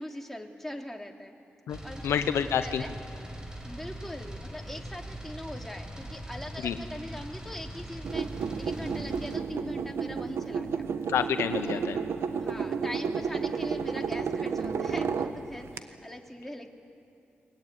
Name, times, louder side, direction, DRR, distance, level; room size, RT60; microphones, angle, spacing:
voice 1, 0.0-1.3 1.8-2.1 2.6-2.9 3.6-10.9 11.6-11.8 12.4-16.7, left 1 dB, 5° left, 2 dB, 3.1 m, -41 dB
voice 2, 1.7-2.8 6.6-6.8 11.1-12.0, left 8 dB, 85° left, 10 dB, 0.9 m, -28 dB
sound 1, 1.7-9.4, right 1 dB, 15° right, 5.5 m, -41 dB
sound 2, 8.0-15.8, right 6 dB, 75° right, 1.2 m, -31 dB
22.5 x 20.0 x 9.7 m, 2.7 s
supercardioid pair, 45°, 4 cm